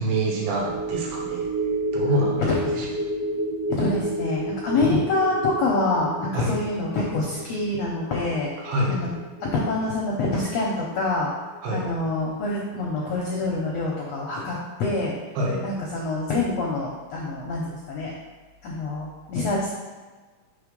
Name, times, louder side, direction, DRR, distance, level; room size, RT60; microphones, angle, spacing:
voice 1, 0.0-1.5 1.9-2.4 2.8-2.9 6.3-6.6 8.6-9.0 11.6-11.9 15.4-15.6, right 1 dB, 85° right, -2 dB, 2.8 m, -26 dB
sound 1, 0.5-11.1 11.5-11.6, right 1 dB, 70° right, 1.4 m, -31 dB
voice 2, 2.5-2.9 3.7-8.5 8.9-9.1 9.4-11.3 11.7-15.1 15.6-18.1 18.6-19.7, left 2 dB, 75° left, -3 dB, 1.5 m, -26 dB
5.5 x 3.4 x 5.2 m, 1.3 s
omnidirectional pair, 4.0 m